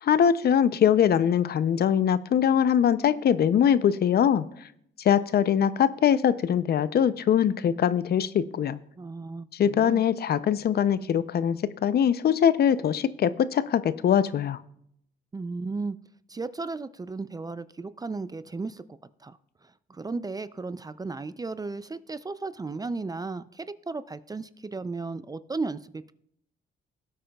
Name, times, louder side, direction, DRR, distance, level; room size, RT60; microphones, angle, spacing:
voice 1, 0.0-4.5 5.0-8.8 9.5-14.6, left 9 dB, 55° left, 15 dB, 0.5 m, -22 dB
voice 2, 9.0-10.0 15.3-16.0 16.3-18.8 19.2-19.4 19.9-26.1, right 3 dB, 20° right, 14 dB, 0.4 m, -35 dB
18.5 x 8.6 x 2.3 m, 0.71 s
cardioid pair, 90°, 20 cm